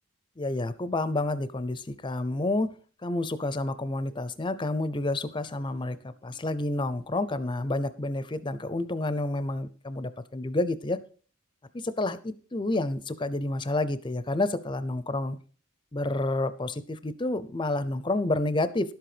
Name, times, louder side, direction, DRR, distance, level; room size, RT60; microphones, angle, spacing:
voice 1, 0.4-2.7 3.0-11.0 11.7-15.4 15.9-18.9, left 2 dB, 20° left, 14 dB, 0.5 m, -29 dB
11.5 x 7.7 x 5.0 m, 0.42 s
head